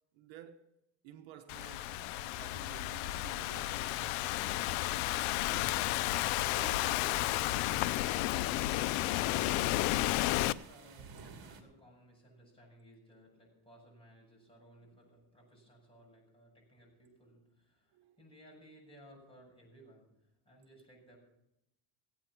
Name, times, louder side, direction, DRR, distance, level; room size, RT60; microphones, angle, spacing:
voice 1, 0.1-0.6 1.0-4.1 5.4-5.8 6.3-7.9 17.9-18.2, right 9 dB, 70° right, 1.2 m, -53 dB
Thunderstorm / Rain, 1.5-10.5, left 17 dB, 85° left, 0.6 m, -32 dB
sound 1, 3.4-11.6, right 6 dB, 50° right, 2.4 m, -56 dB
voice 2, 9.3-9.9 10.1-20.1 20.4-21.2, equal, 10° left, 6.9 m, -59 dB
16.5 x 9.2 x 5.9 m
cardioid pair, 125°, 47 cm